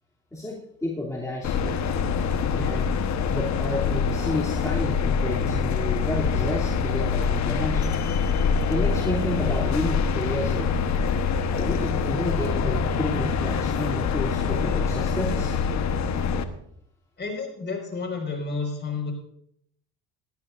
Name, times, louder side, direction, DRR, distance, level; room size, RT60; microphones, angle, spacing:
voice 1, 0.3-1.8 2.5-3.0 3.3-8.0 8.7-10.7 11.5-15.6, left 1 dB, 10° left, -5 dB, 3.0 m, -31 dB
sound 1, 1.4-16.4, left 5 dB, 55° left, 1.2 m, -25 dB
voice 2, 17.2-19.1, left 4 dB, 30° left, 2 dB, 5.2 m, -30 dB
18.5 x 12.5 x 2.6 m, 0.69 s
supercardioid pair, 85°, 34 cm